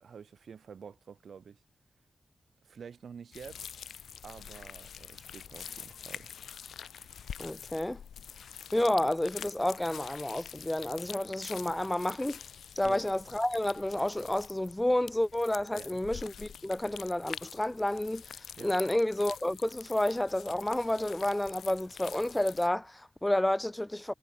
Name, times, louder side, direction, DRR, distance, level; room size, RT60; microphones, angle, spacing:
voice 1, 0.0-1.6 2.6-3.7 4.2-6.3 12.8-13.1 15.7-15.9 18.6-18.8, right 6 dB, 80° right, 7.1 m, -48 dB
sound 1, 3.3-22.7, left 8 dB, 90° left, 2.3 m, -46 dB
voice 2, 7.4-8.0 8.7-12.4 12.8-18.2 18.6-24.1, left 1 dB, 15° left, 2.4 m, -30 dB
cardioid pair, 40°, 0 cm